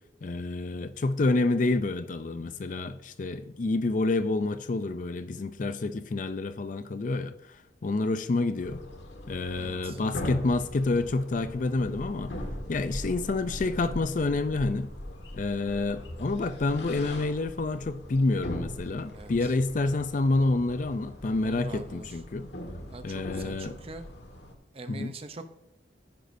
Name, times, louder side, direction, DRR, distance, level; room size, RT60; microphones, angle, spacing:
voice 1, 0.2-8.8 9.3-12.4 12.7-14.9 15.3-22.5 23.0-23.7 24.9-25.1, left 2 dB, 45° left, 0.4 m, -28 dB
sound 1, 8.6-24.5, left 1 dB, 70° left, 1.6 m, -40 dB
voice 2, 9.5-10.0 19.1-19.5 21.4-22.1 22.9-24.0 24.7-25.4, right 2 dB, 30° right, 0.6 m, -43 dB
10.5 x 10.0 x 2.6 m
head